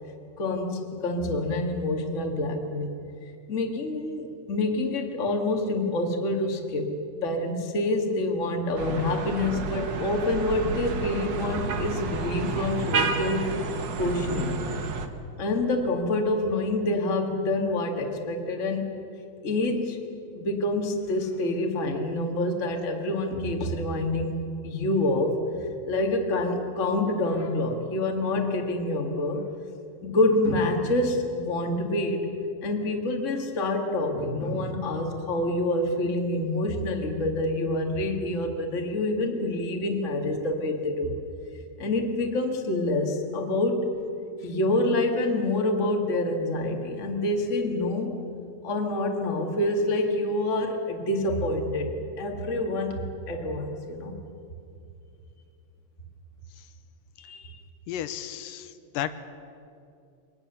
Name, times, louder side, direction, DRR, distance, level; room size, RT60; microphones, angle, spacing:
voice 1, 0.4-2.9 3.5-6.9 7.2-13.5 14.0-14.5 15.4-18.8 19.4-20.0 20.3-24.4 24.6-25.4 25.9-29.4 30.0-32.3 32.6-41.1 41.8-43.9 44.4-48.2 48.6-54.1 57.2-57.5, left 2 dB, 30° left, 2 dB, 1.7 m, -27 dB
sound 1, 8.8-15.1, right 4 dB, 80° right, 1.0 m, -30 dB
voice 2, 57.9-59.2, left 11 dB, 85° left, 11 dB, 2.4 m, -33 dB
24.0 x 19.5 x 6.9 m, 2.6 s
omnidirectional pair, 3.9 m